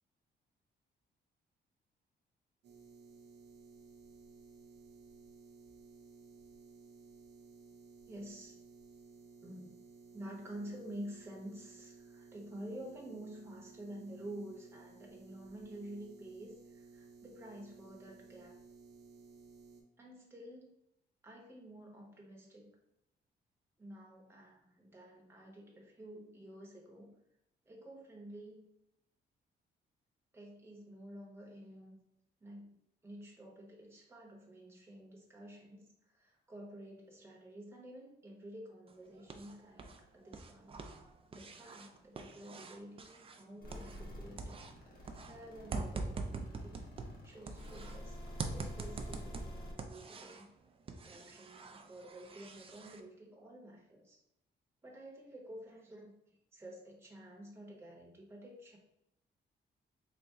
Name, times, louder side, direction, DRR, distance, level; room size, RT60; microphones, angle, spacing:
sound 1, 2.6-19.8, right 4 dB, 65° right, 0.7 m, -57 dB
voice 1, 8.1-8.6 9.4-9.8 10.1-18.6 20.0-20.7 21.2-22.8 23.8-27.1 27.7-28.6 30.3-32.0 32.4-32.8 33.0-40.8 41.3-50.5 51.0-54.2 54.8-58.8, right 1 dB, 15° right, -1 dB, 0.7 m, -50 dB
sound 2, 38.9-40.0 40.3-44.1 44.4-48.0 48.4-50.5 50.9-53.0, right 3 dB, 30° right, 0.4 m, -44 dB
sound 3, 43.6-49.7, equal, 55° left, 1.1 m, -48 dB
3.4 x 2.0 x 4.1 m, 0.81 s
cardioid pair, 130°, 18 cm